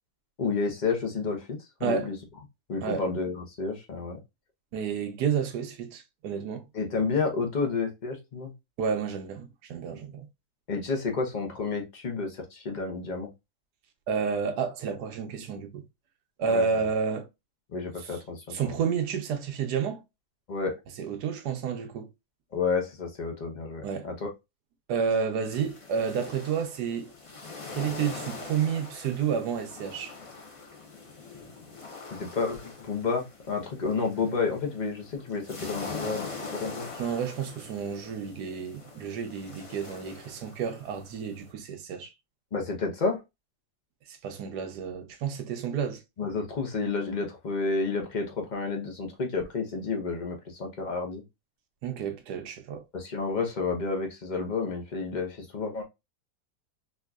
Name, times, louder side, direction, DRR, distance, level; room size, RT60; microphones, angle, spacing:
voice 1, 0.4-2.2 2.7-4.2 6.7-8.5 10.7-13.3 16.5-16.7 17.7-18.8 20.5-20.7 22.5-24.3 32.2-36.3 36.6-36.9 42.5-43.2 46.2-51.2 52.9-55.8, left 4 dB, 35° left, 0.7 m, -30 dB
voice 2, 4.7-6.6 8.8-10.2 14.1-15.8 16.4-17.3 18.5-20.0 21.0-22.1 23.8-24.1 24.9-27.1 27.7-30.1 37.0-42.1 44.1-46.0 51.8-52.8, right 6 dB, 75° right, 1.2 m, -30 dB
sound 1, 25.4-41.5, left 4 dB, 55° left, 0.3 m, -43 dB
4.3 x 2.7 x 2.3 m
omnidirectional pair, 1.8 m